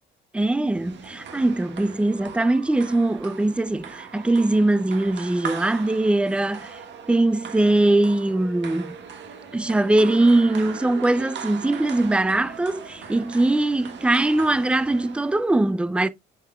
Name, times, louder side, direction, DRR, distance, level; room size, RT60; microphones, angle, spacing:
voice 1, 0.3-6.8 7.1-8.9 9.5-16.1, right 2 dB, 5° right, 0.3 m, -21 dB
sound 1, 0.7-15.5, right 6 dB, 60° right, 1.6 m, -39 dB
7.4 x 6.8 x 2.3 m
cardioid pair, 135°, 21 cm